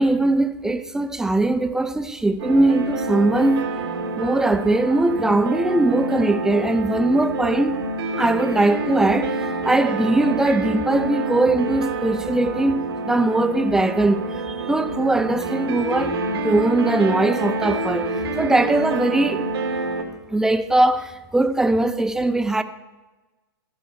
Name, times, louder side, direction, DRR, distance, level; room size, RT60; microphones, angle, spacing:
voice 1, 0.0-3.6 4.2-7.7 8.2-16.1 16.4-18.1 18.4-19.5 20.3-22.6, right 2 dB, 5° right, 0.6 m, -20 dB
sound 1, 2.4-20.0, right 2 dB, 80° right, 2.3 m, -27 dB
14.5 x 6.0 x 6.4 m
hypercardioid pair, 115°, 13 cm